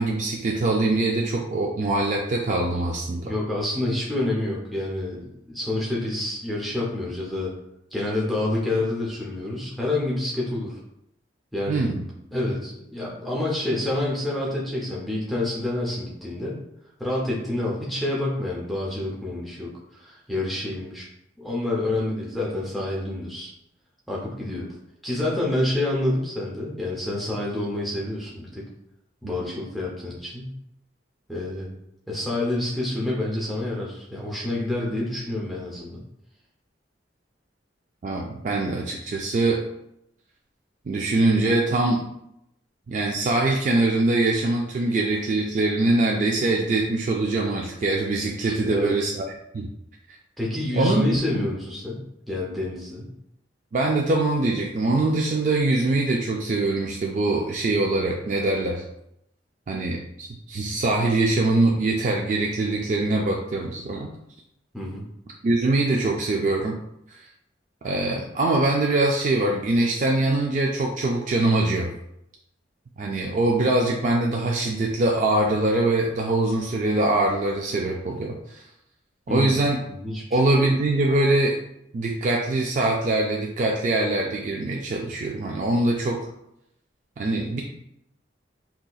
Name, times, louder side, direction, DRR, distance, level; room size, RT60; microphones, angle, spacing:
voice 1, 0.0-3.3 11.7-12.0 29.2-29.5 38.0-39.6 40.9-42.0 42.9-49.3 49.5-49.7 50.7-51.0 53.7-58.8 59.7-64.1 65.4-66.8 67.1-67.2 67.8-71.9 73.0-78.6 79.3-79.8 80.3-81.6 81.9-86.2 87.2-87.6, right 2 dB, 45° right, 0 dB, 0.3 m, -23 dB
voice 2, 3.2-7.5 7.9-10.8 11.5-11.9 12.3-16.6 17.0-21.1 21.4-23.5 24.1-24.7 25.0-28.6 29.2-30.6 31.3-31.7 32.1-36.0 48.4-49.0 50.4-53.1 64.7-65.0 79.3-79.6 79.9-80.4, left 1 dB, ahead, -5 dB, 0.6 m, -28 dB
4.0 x 2.8 x 2.3 m, 0.79 s
head